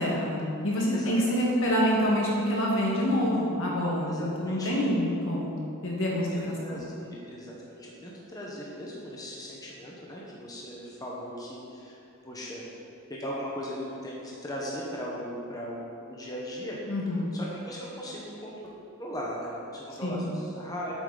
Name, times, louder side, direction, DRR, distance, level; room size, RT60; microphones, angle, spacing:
voice 1, 0.0-5.6 5.8-6.8 16.9-17.3 20.0-20.3, equal, 65° left, -3 dB, 1.8 m, -27 dB
voice 2, 0.9-1.4 4.1-4.8 6.1-12.0 12.2-12.6 13.1-16.8 17.3-18.5 19.0-20.9, equal, 15° left, -5 dB, 1.2 m, -38 dB
8.5 x 8.2 x 4.1 m, 2.6 s
head